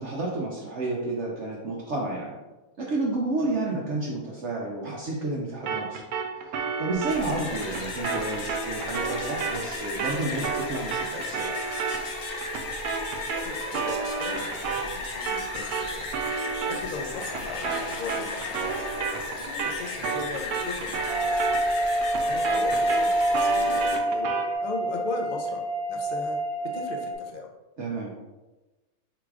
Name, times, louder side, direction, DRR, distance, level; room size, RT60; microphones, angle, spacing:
voice 1, 0.0-2.4 2.8-6.0 6.3-11.5 27.8-28.1, right 2 dB, 60° right, -3 dB, 0.8 m, -31 dB
sound 1, 5.7-15.0 15.3-24.6, right 5 dB, 85° right, 1.1 m, -32 dB
sound 2, 6.9-24.0, left 3 dB, 90° left, 1.2 m, -35 dB
voice 2, 13.3-16.1 16.7-18.9 19.4-21.4 22.2-24.3 24.6-26.4 26.7-27.5, left 3 dB, 50° left, 1 dB, 0.5 m, -38 dB
sound 3, 21.1-27.1, right 1 dB, 20° left, 0.8 m, -26 dB
3.9 x 2.4 x 4.6 m, 1.1 s
omnidirectional pair, 1.5 m